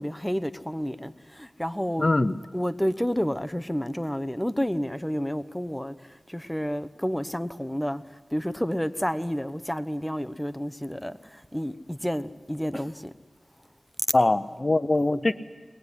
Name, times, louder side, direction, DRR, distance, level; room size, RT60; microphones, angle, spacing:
voice 1, 0.0-2.1 2.5-13.1, equal, 5° left, 1.0 m, -30 dB
voice 2, 2.0-2.4 14.1-15.3, left 2 dB, 40° left, 0.8 m, -22 dB
22.5 x 20.5 x 9.8 m
cardioid pair, 40°, 0 cm